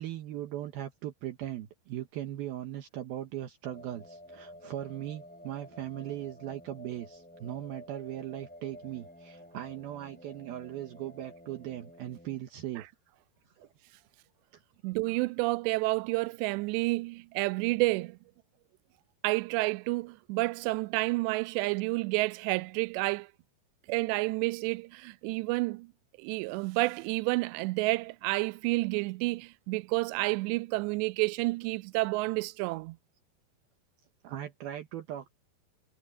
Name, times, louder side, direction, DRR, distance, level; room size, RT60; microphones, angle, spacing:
voice 1, 0.0-12.9 13.6-13.7 34.2-35.3, right 12 dB, 70° right, 2.9 m, -39 dB
sound 1, 3.6-12.4, left 1 dB, 5° left, 2.2 m, -51 dB
voice 2, 14.8-18.2 19.2-23.3 23.9-25.9 26.2-33.0, right 23 dB, 90° right, 2.8 m, -30 dB
omnidirectional pair, 4.9 m